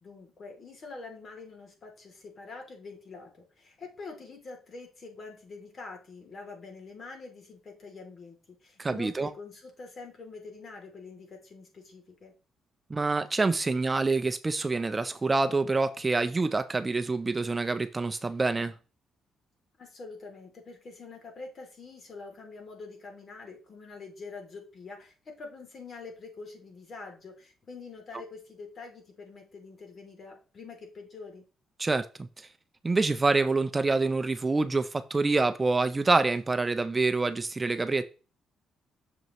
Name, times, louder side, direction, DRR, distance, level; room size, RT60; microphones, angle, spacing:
voice 1, 0.0-12.3 19.8-31.5, left 4 dB, 45° left, 2.8 m, -45 dB
voice 2, 8.8-9.3 12.9-18.7 31.8-32.5 32.8-38.0, right 3 dB, 25° right, 0.5 m, -26 dB
6.8 x 6.1 x 3.0 m
cardioid pair, 90°, 0 cm